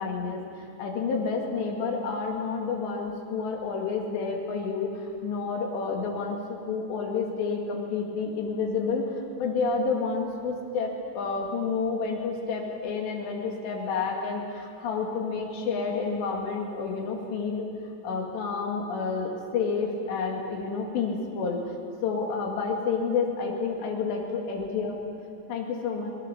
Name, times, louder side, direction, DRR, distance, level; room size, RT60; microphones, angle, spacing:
voice 1, 0.0-4.9 5.2-9.1 9.4-17.7 18.0-21.6 22.0-25.0 25.5-26.1, left 5 dB, 80° left, 1 dB, 4.5 m, -29 dB
25.5 x 18.5 x 7.1 m, 2.4 s
omnidirectional pair, 5.0 m